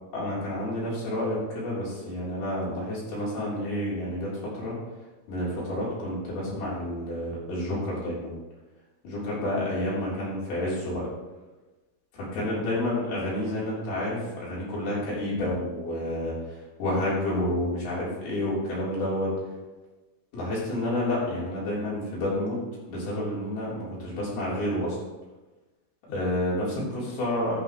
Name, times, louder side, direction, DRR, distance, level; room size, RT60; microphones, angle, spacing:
voice 1, 0.1-4.8 5.3-8.3 9.0-11.0 12.1-19.3 20.3-25.0 26.1-27.6, left 1 dB, 75° left, -7 dB, 5.4 m, -29 dB
12.0 x 8.8 x 3.1 m, 1.2 s
omnidirectional pair, 4.5 m